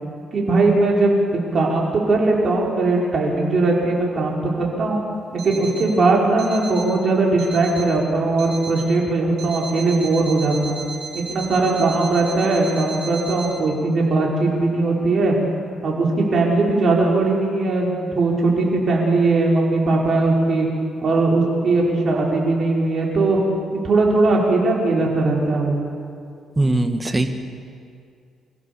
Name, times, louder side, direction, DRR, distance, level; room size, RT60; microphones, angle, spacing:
voice 1, 0.3-5.0 5.4-10.8 11.1-15.4 15.8-20.7 21.0-23.4 23.8-25.8, right 2 dB, 50° right, -2 dB, 5.4 m, -19 dB
Alarm, 5.4-6.0 6.4-7.0 7.4-8.0 8.4-9.0 9.4-13.5, right 4 dB, 80° right, 4.6 m, -35 dB
voice 2, 26.6-27.3, right 2 dB, 20° right, 6 dB, 1.8 m, -20 dB
25.0 x 15.0 x 7.1 m, 2.3 s
cardioid pair, 90°, 0 cm